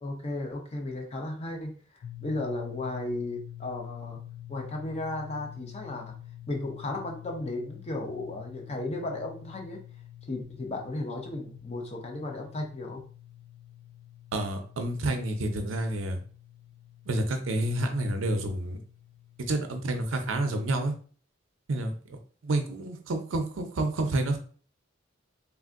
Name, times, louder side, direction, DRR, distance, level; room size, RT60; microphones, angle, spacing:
voice 1, 0.0-1.7 2.2-4.2 4.5-6.1 6.5-9.8 10.3-13.0, left 2 dB, 35° left, 3 dB, 0.6 m, -35 dB
sound 1, 2.0-19.8, left 12 dB, 85° left, 0.4 m, -47 dB
voice 2, 14.3-16.2 17.1-18.8 19.4-20.9 21.7-24.4, right 1 dB, 90° right, 5 dB, 0.6 m, -29 dB
3.3 x 2.5 x 2.5 m, 0.42 s
head